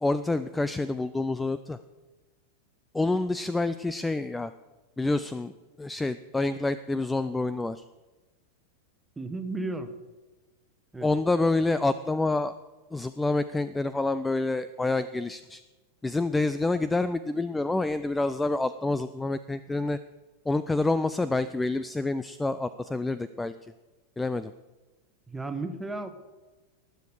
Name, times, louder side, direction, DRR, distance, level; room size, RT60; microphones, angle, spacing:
voice 1, 0.0-1.8 2.9-4.5 5.0-5.5 5.8-7.8 11.0-12.6 12.9-15.6 16.0-20.0 20.5-23.5 24.2-24.5, left 2 dB, 10° left, 14 dB, 0.4 m, -27 dB
voice 2, 9.2-9.9 10.9-11.1 25.3-26.1, right 2 dB, 10° right, 8 dB, 1.1 m, -33 dB
19.5 x 6.9 x 4.8 m, 1.2 s
figure-of-eight pair, 90°, 0 cm